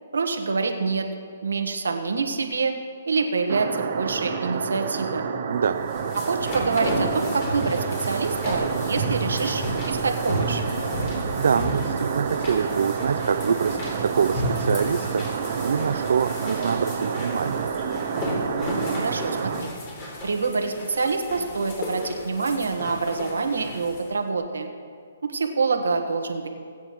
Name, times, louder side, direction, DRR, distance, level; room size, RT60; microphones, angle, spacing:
voice 1, 0.1-1.1 1.4-2.7 3.1-5.2 6.2-10.6 18.9-19.7 20.2-24.7 25.3-26.5, right 4 dB, 85° right, 4 dB, 1.4 m, -26 dB
sound 1, 3.5-19.6, right 6 dB, 50° right, 1.0 m, -29 dB
voice 2, 5.5-5.8 11.4-17.7, right 6 dB, 70° right, 9 dB, 0.4 m, -25 dB
sound 2, 5.7-24.1, equal, 35° left, 3.4 m, -32 dB
20.0 x 9.1 x 3.1 m, 2.2 s
hypercardioid pair, 150°, 0 cm